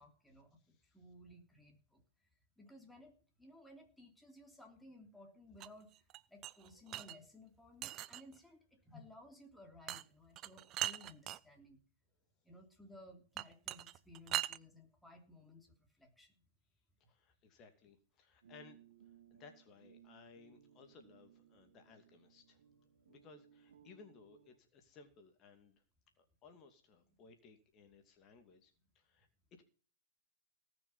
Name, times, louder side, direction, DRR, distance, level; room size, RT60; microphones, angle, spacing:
voice 1, 0.0-2.0 2.6-3.1 3.4-5.9 6.3-11.8 12.4-16.3 27.2-27.3, left 1 dB, 5° left, 2 dB, 3.2 m, -58 dB
sound 1, 5.6-7.2 7.8-8.4 9.9-10.0 10.4-11.4 13.4-14.6, right 14 dB, 30° right, 0.6 m, -40 dB
voice 2, 17.0-18.8 19.3-22.6 23.1-25.8 26.2-29.6, left 5 dB, 30° left, 6 dB, 2.5 m, -61 dB
sound 2, 18.4-24.6, right 9 dB, 70° right, 2.1 m, -64 dB
18.0 x 6.3 x 5.8 m, 0.42 s
hypercardioid pair, 115°, 0 cm